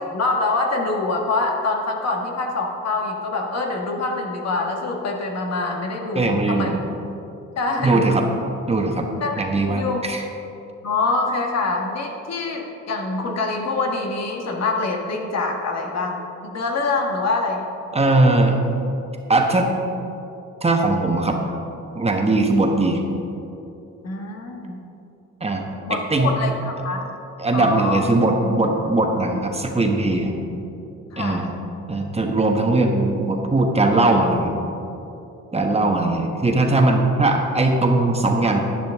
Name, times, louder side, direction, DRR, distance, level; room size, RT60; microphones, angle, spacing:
voice 1, 0.1-6.8 7.6-8.1 9.2-10.0 10.8-17.6 24.0-24.8 25.9-27.1 27.5-28.1 31.1-31.6 35.8-36.1, left 3 dB, 60° left, 2 dB, 1.5 m, -25 dB
voice 2, 6.1-6.8 7.8-8.2 8.7-9.1 9.4-10.2 17.9-18.6 19.3-19.7 20.6-21.4 21.9-23.0 25.4-26.3 27.4-30.4 31.2-31.5 31.9-34.5 35.5-38.6, right 2 dB, 20° right, 2 dB, 1.1 m, -20 dB
10.5 x 10.5 x 3.5 m, 2.8 s
cardioid pair, 90°, 30 cm